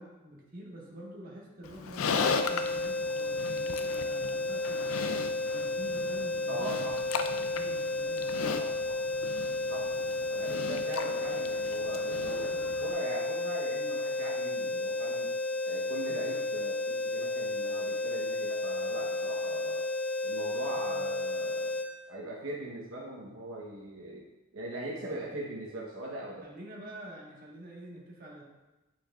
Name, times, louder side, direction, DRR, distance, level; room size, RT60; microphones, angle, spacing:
voice 1, 0.0-4.9 5.5-7.0 7.5-8.4 16.1-16.4 20.8-21.0 26.4-28.4, right 1 dB, 45° right, -4 dB, 1.5 m, -47 dB
Livestock farm animals working animals, 1.6-12.9, left 5 dB, 90° left, 0.4 m, -37 dB
sound 1, 2.2-21.9, left 2 dB, 5° left, 0.4 m, -32 dB
voice 2, 6.5-7.0 8.6-9.3 9.7-15.3 15.6-19.9 20.2-21.8 22.1-24.3 24.5-26.5, right 1 dB, 80° right, -3 dB, 1.0 m, -41 dB
8.5 x 6.0 x 2.4 m, 1.1 s
head